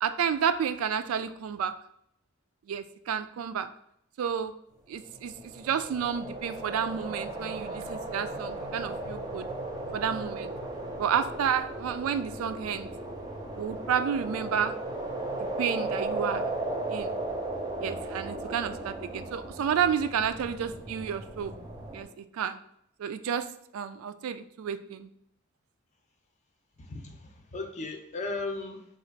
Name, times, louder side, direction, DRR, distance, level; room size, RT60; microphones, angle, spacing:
voice 1, 0.0-1.7 2.7-3.7 4.2-4.5 4.9-9.5 9.9-10.5 11.0-12.9 13.5-14.7 15.6-16.4 16.9-17.1 17.8-21.5 21.9-22.1 22.3-22.6 23.0-23.5 23.7-25.1, right 7 dB, 80° right, 11 dB, 0.3 m, -30 dB
sound 1, 5.1-22.0, right 2 dB, 20° right, 0.6 m, -36 dB
voice 2, 26.8-28.8, left 3 dB, 35° left, 4 dB, 0.5 m, -36 dB
3.8 x 2.4 x 4.5 m, 0.73 s
head